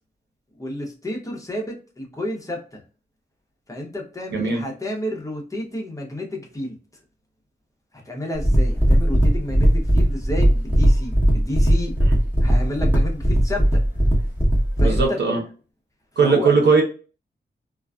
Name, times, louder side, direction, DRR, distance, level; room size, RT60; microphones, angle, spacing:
voice 1, 0.6-2.8 3.7-6.8 8.1-11.9 12.4-13.8 14.8-15.2 16.2-16.5, left 1 dB, 20° left, 0 dB, 0.6 m, -30 dB
voice 2, 4.3-4.6 14.8-15.4 16.2-16.8, right 4 dB, 75° right, 1 dB, 0.8 m, -18 dB
sound 1, 8.4-15.1, equal, 10° right, 1.0 m, -18 dB
2.4 x 2.2 x 2.3 m, 0.36 s
wide cardioid pair, 100°, 18 cm